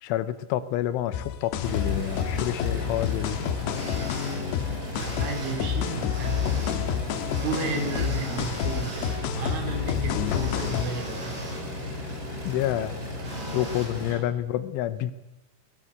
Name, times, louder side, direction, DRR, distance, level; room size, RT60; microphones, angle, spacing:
voice 1, 0.0-3.4 12.4-13.0 13.5-15.1, left 12 dB, 85° left, 13 dB, 3.4 m, -28 dB
sound 1, 1.1-10.9, left 8 dB, 70° left, 3.0 m, -29 dB
sound 2, 1.6-14.1, left 1 dB, 20° right, 7.6 m, -35 dB
sound 3, 3.7-4.3 4.9-5.5 6.1-6.7 7.3-9.2 10.3-11.6 13.3-13.9, right 1 dB, 45° right, 8.8 m, -40 dB
voice 2, 4.9-6.4 7.4-9.1 9.4-11.4 14.1-14.2, right 4 dB, 75° right, 5 dB, 5.4 m, -33 dB
21.0 x 20.0 x 8.0 m, 0.96 s
omnidirectional pair, 5.5 m